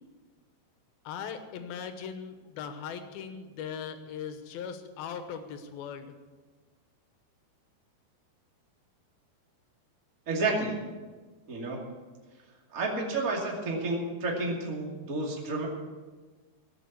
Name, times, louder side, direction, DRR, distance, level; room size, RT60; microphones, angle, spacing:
voice 1, 1.1-6.1, left 7 dB, 75° left, 8 dB, 2.9 m, -39 dB
voice 2, 10.3-10.8 11.5-11.8 12.7-15.7, right 2 dB, 25° right, -2 dB, 2.3 m, -30 dB
17.0 x 7.4 x 8.2 m, 1.4 s
omnidirectional pair, 4.5 m